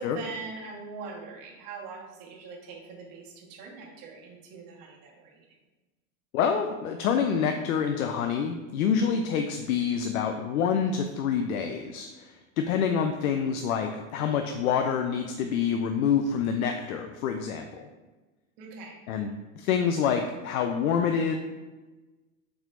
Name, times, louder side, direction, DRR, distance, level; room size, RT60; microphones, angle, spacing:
voice 1, 0.0-5.5 18.6-19.0, right 4 dB, 50° right, -1 dB, 1.5 m, -42 dB
voice 2, 6.3-17.9 19.1-19.3 19.5-21.3, left 7 dB, 90° left, 5 dB, 0.5 m, -27 dB
6.0 x 3.5 x 2.5 m, 1.2 s
hypercardioid pair, 110°, 41 cm